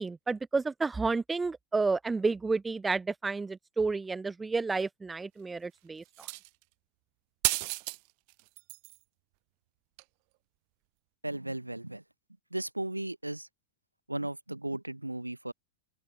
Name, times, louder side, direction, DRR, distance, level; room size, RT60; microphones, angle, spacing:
voice 1, 0.0-6.3, right 4 dB, 10° right, 0.9 m, -31 dB
sound 1, 6.1-6.6 7.4-8.0 8.3-9.0 10.0-10.1, right 38 dB, 45° right, 0.5 m, -32 dB
voice 2, 11.2-12.0 12.5-13.5 14.1-15.5, right 1 dB, 85° right, 1.0 m, -35 dB
open air
figure-of-eight pair, 90°, 0 cm